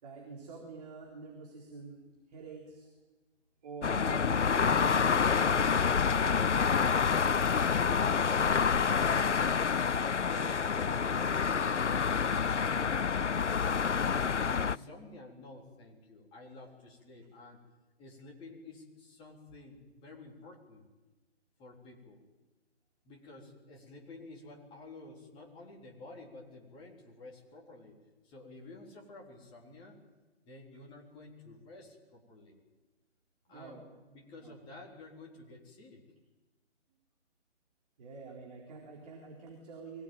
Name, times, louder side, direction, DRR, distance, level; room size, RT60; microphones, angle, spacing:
voice 1, 0.0-2.9 3.6-5.7 33.5-33.9 34.4-34.6 38.0-40.0, right 4 dB, 35° right, -1 dB, 4.3 m, -47 dB
sound 1, 3.8-14.8, left 6 dB, 80° left, 0.7 m, -28 dB
voice 2, 10.2-14.2 14.5-17.6 18.0-20.9 21.6-22.3 23.0-28.0 28.2-30.0 30.4-32.6 33.5-36.0, left 2 dB, 15° left, -1 dB, 3.6 m, -51 dB
24.0 x 18.0 x 9.3 m, 1.2 s
figure-of-eight pair, 145°, 35 cm